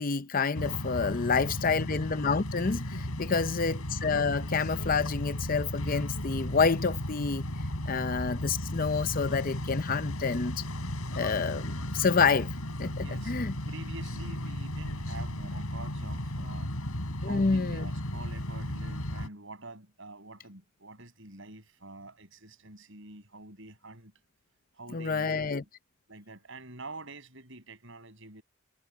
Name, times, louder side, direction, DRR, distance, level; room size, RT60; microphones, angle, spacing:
voice 1, 0.0-7.5 7.9-10.6 11.2-12.5 12.8-13.6 17.2-17.9 24.9-25.6, left 5 dB, 40° left, 0.6 m, -28 dB
sound 1, 0.5-19.3, left 1 dB, 75° left, 4.9 m, -35 dB
voice 2, 1.2-2.0 3.2-3.8 7.8-8.1 12.9-16.8 17.2-24.1 24.7-25.7 26.1-28.4, right 2 dB, 60° right, 7.2 m, -47 dB
head